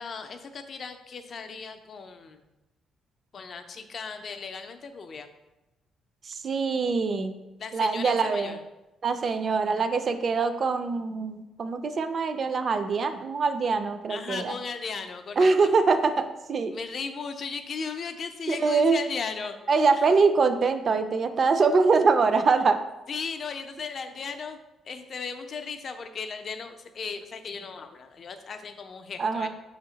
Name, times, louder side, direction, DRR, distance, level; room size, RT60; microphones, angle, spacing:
voice 1, 0.0-2.4 3.3-5.3 7.6-8.6 14.1-15.7 16.7-19.6 19.9-20.0 23.1-24.6 24.8-29.5, left 5 dB, 50° left, 7 dB, 0.4 m, -36 dB
voice 2, 6.2-7.4 7.7-8.6 9.0-14.6 15.4-16.7 18.5-19.0 19.7-22.8 29.2-29.5, right 4 dB, 45° right, 8 dB, 0.4 m, -24 dB
4.2 x 2.8 x 3.9 m, 0.98 s
cardioid pair, 90°, 0 cm